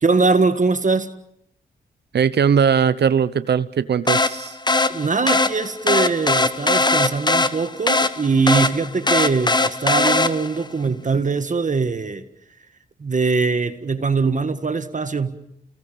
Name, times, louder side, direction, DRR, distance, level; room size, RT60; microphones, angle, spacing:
voice 1, 0.0-1.1 4.9-12.3 13.0-15.4, right 4 dB, 45° right, 1.7 m, -21 dB
voice 2, 2.1-4.6, right 7 dB, 65° right, 0.9 m, -19 dB
sound 1, 4.1-10.7, left 2 dB, 25° left, 1.3 m, -20 dB
29.5 x 19.5 x 7.5 m
cardioid pair, 50°, 19 cm